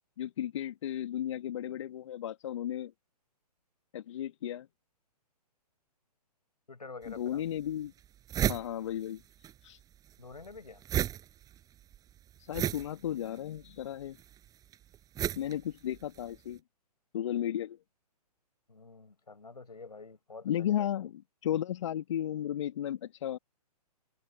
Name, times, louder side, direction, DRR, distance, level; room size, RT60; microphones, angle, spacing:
voice 1, 0.2-2.9 3.9-4.7 7.1-7.9 8.5-9.2 9.6-9.8 12.4-14.2 15.4-16.6 17.1-17.8 20.4-23.4, left 11 dB, 45° left, 2.1 m, -34 dB
voice 2, 6.7-7.4 10.2-10.8 18.7-20.9, left 4 dB, 75° left, 7.3 m, -48 dB
sound 1, 7.0-7.1 7.7-7.8 8.0-9.5 9.8-16.4, right 11 dB, 15° right, 5.3 m, -34 dB
figure-of-eight pair, 120°, 21 cm